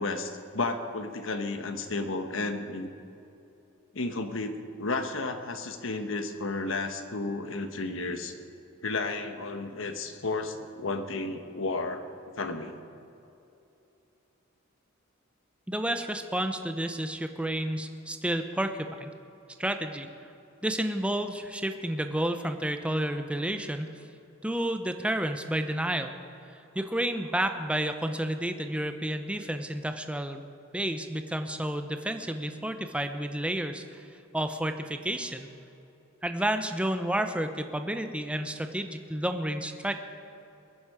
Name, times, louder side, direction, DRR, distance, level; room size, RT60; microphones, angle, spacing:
voice 1, 0.0-2.9 3.9-8.3 8.8-12.0 12.4-12.8, left 3 dB, 70° left, 7 dB, 1.2 m, -32 dB
voice 2, 15.7-19.1 19.6-20.1 20.6-23.9 24.4-26.2 26.7-34.0 34.3-35.5 36.2-39.9, right 1 dB, 5° right, 7 dB, 0.7 m, -31 dB
21.5 x 10.0 x 4.9 m, 2.9 s
head